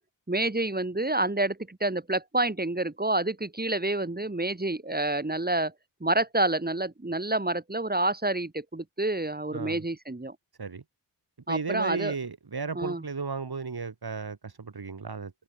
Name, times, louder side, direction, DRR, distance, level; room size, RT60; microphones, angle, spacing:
voice 1, 0.3-5.7 6.0-10.3 11.5-12.1 12.7-13.1, right 2 dB, 20° right, 3.1 m, -28 dB
voice 2, 11.5-15.3, right 4 dB, 55° right, 6.5 m, -34 dB
cardioid pair, 60°, 45 cm